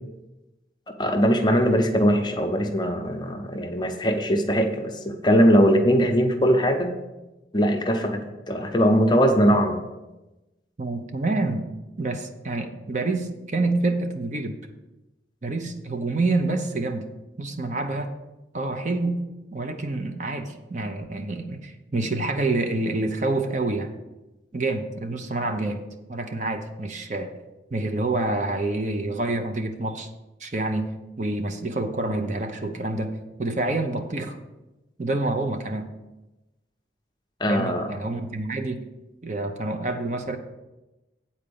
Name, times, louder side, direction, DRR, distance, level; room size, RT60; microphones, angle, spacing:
voice 1, 1.0-6.9 7.5-9.8 37.4-37.9, equal, 25° left, 4 dB, 0.7 m, -21 dB
voice 2, 10.8-11.7 12.0-14.6 15.4-17.1 17.4-18.1 18.5-19.2 19.5-23.9 24.5-25.8 26.1-27.3 27.7-30.1 30.4-30.9 31.2-34.4 35.0-35.9 37.5-38.8 39.2-40.4, right 2 dB, 40° right, 6 dB, 0.7 m, -27 dB
8.8 x 4.3 x 6.9 m, 1.0 s
head